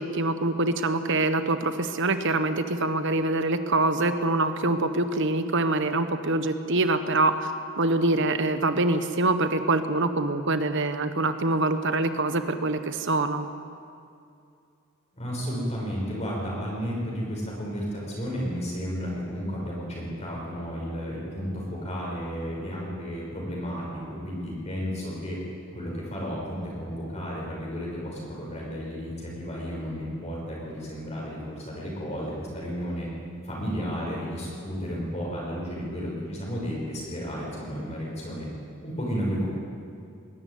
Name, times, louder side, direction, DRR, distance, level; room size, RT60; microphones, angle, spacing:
voice 1, 0.0-7.5 7.8-13.5, right 2 dB, 60° right, 10 dB, 1.2 m, -25 dB
voice 2, 15.1-25.4 25.7-33.1 33.4-38.5 38.8-39.5, equal, 30° left, -4 dB, 6.0 m, -33 dB
21.0 x 13.0 x 9.6 m, 2.5 s
head